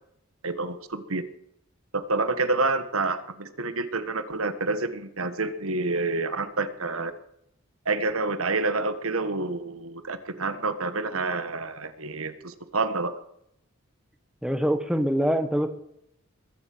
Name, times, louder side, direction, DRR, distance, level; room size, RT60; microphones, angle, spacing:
voice 1, 0.4-1.2 1.9-7.1 7.8-13.2, right 3 dB, 80° right, 11 dB, 1.5 m, -28 dB
voice 2, 14.4-15.8, equal, 5° right, 7 dB, 1.3 m, -24 dB
21.5 x 8.4 x 7.9 m, 0.77 s
head